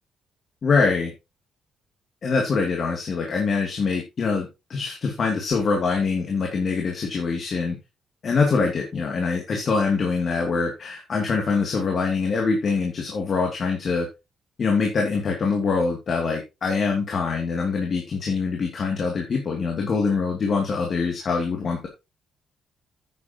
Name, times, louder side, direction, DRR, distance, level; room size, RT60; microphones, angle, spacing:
voice 1, 0.6-1.1 2.2-7.8 8.2-14.1 14.6-21.9, left 4 dB, 50° left, 2 dB, 2.6 m, -24 dB
9.4 x 9.4 x 3.0 m, 0.25 s
cardioid pair, 90°, 0 cm